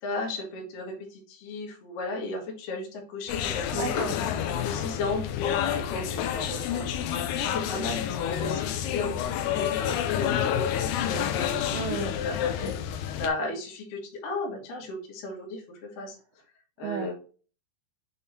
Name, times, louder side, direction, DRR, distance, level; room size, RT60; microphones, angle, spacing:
voice 1, 0.0-3.9 4.5-16.2 16.8-17.1, left 2 dB, 55° left, -1 dB, 3.0 m, -35 dB
sound 1, 3.3-13.3, left 10 dB, 80° left, 2.5 m, -29 dB
voice 2, 3.7-4.3 11.7-12.2 16.8-17.1, right 7 dB, 80° right, 3 dB, 2.2 m, -33 dB
7.3 x 3.8 x 4.1 m, 0.38 s
omnidirectional pair, 5.1 m